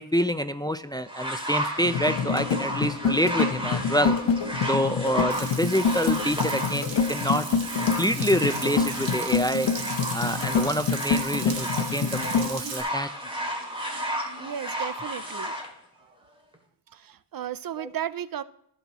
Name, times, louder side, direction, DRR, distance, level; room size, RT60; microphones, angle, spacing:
voice 1, 0.0-4.2 4.7-7.5 7.8-9.7 10.1-13.1 17.8-17.9, equal, 10° left, 11 dB, 0.4 m, -27 dB
sound 1, 1.1-15.7 16.5-16.6, equal, 10° right, 2.4 m, -33 dB
sound 2, 1.8-12.5, left 6 dB, 80° left, 0.9 m, -27 dB
Frying (food), 5.3-12.8, right 5 dB, 90° right, 1.6 m, -37 dB
voice 2, 14.4-15.5 16.9-18.4, right 10 dB, 55° right, 17 dB, 0.5 m, -34 dB
16.5 x 5.6 x 3.0 m, 0.76 s
cardioid pair, 65°, 43 cm